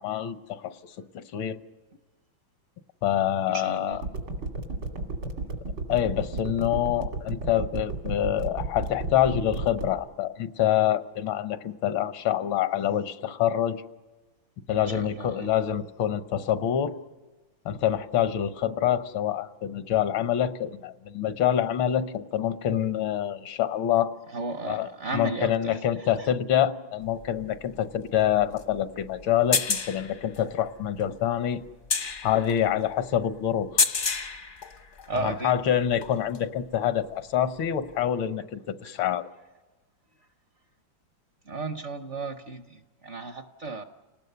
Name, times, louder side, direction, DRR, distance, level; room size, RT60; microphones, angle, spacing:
voice 1, 0.0-1.6 3.0-4.0 5.9-13.8 14.7-16.9 17.7-24.1 24.7-24.9 25.1-31.6 32.2-33.9 35.1-39.3, left 10 dB, 85° left, 11 dB, 1.7 m, -26 dB
voice 2, 3.5-4.0 14.9-15.5 24.3-26.3 35.1-35.6 41.5-43.8, right 3 dB, 55° right, 8 dB, 0.8 m, -34 dB
sound 1, 3.9-9.9, right 3 dB, 80° right, 3.4 m, -31 dB
sound 2, 27.0-35.3 35.8-36.6 37.9-38.0, left 5 dB, 50° left, 0.6 m, -31 dB
30.0 x 19.0 x 6.8 m, 1.2 s
omnidirectional pair, 2.1 m